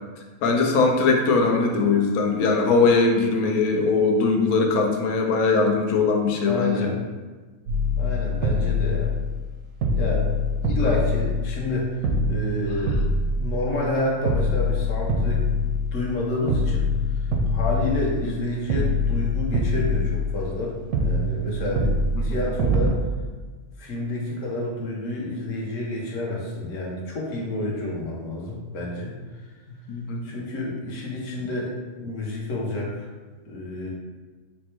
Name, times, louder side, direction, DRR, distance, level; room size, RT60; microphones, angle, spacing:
voice 1, 0.4-6.9 10.8-10.9 22.2-22.4 29.9-30.2, left 4 dB, 85° left, 2 dB, 1.1 m, -21 dB
voice 2, 6.4-6.9 8.0-9.1 9.9-10.3 10.6-11.9 12.3-12.9 13.3-15.5 15.9-16.9 17.5-22.0 22.2-22.9 23.8-29.1 30.2-31.7 32.0-33.1 33.4-33.9, left 2 dB, 65° left, -3 dB, 1.2 m, -29 dB
sound 1, 7.7-9.5 9.8-11.7 12.0-13.9 14.3-16.2 16.5-18.4 18.7-20.6 20.9-22.9, left 2 dB, 85° right, 1.1 m, -24 dB
4.1 x 2.2 x 4.3 m, 1.3 s
omnidirectional pair, 1.5 m